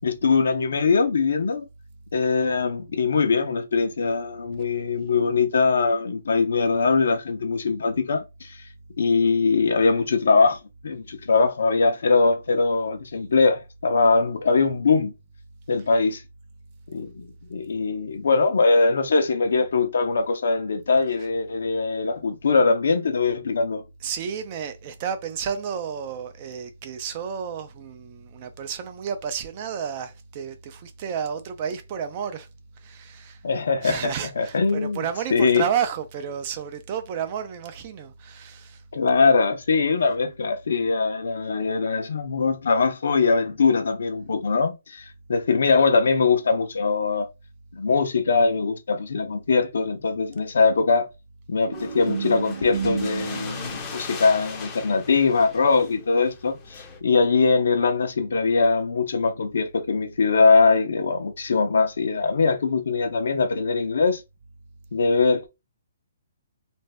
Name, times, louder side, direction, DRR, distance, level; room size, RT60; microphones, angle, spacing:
voice 1, 0.0-1.6 2.1-8.6 9.0-15.1 15.7-16.2 16.9-23.8 33.4-35.0 35.3-35.6 38.9-47.3 47.7-51.1 51.5-64.2 64.9-65.5, left 4 dB, 75° left, 0.7 m, -22 dB
voice 2, 24.0-32.5 32.8-33.4 33.8-38.8, right 7 dB, 35° right, 0.5 m, -31 dB
sound 1, 51.7-57.0, left 5 dB, 20° left, 0.6 m, -39 dB
sound 2, 51.7-57.5, right 6 dB, 80° right, 0.6 m, -35 dB
2.6 x 2.0 x 3.4 m
hypercardioid pair, 155°, 0 cm